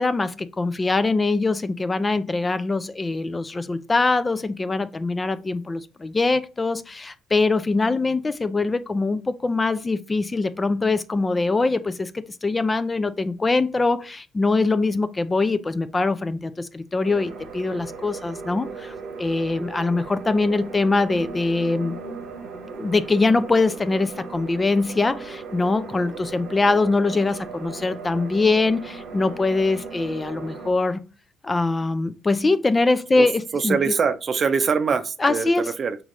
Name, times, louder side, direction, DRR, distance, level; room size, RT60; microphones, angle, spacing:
voice 1, 0.0-22.0 22.8-31.0 31.4-33.8 35.2-35.7, left 3 dB, 25° left, 0.4 m, -23 dB
sound 1, 17.0-30.7, right 5 dB, 75° right, 0.9 m, -37 dB
voice 2, 33.5-35.5 35.8-36.0, right 5 dB, 50° right, 0.6 m, -23 dB
5.9 x 3.1 x 2.5 m
hypercardioid pair, 55°, 0 cm